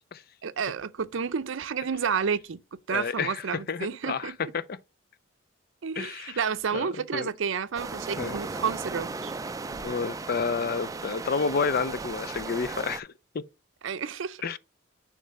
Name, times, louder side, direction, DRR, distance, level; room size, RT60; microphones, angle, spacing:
voice 1, 0.4-2.6 2.9-4.4 5.8-9.3 13.8-14.4, right 6 dB, 70° right, 0.5 m, -30 dB
voice 2, 2.9-4.8 6.0-6.4 6.7-7.3 8.2-8.4 9.8-13.4 14.4-14.6, left 5 dB, 50° left, 0.4 m, -30 dB
sound 1, 7.8-13.0, right 3 dB, 15° right, 0.3 m, -36 dB
6.5 x 3.3 x 5.2 m
head